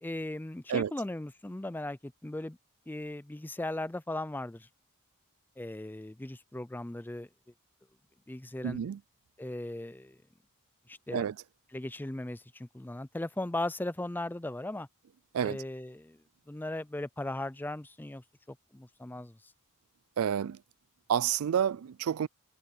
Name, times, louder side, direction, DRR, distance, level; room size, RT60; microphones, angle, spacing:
voice 1, 0.0-2.6 2.9-4.7 5.6-7.3 8.3-8.8 9.4-10.2 10.9-11.2 11.7-14.9 15.4-16.2 16.5-19.4, left 1 dB, 10° left, 0.4 m, -38 dB
voice 2, 8.6-9.0 11.1-11.4 15.3-15.6 20.2-20.6 21.1-22.3, right 8 dB, 70° right, 0.4 m, -29 dB
head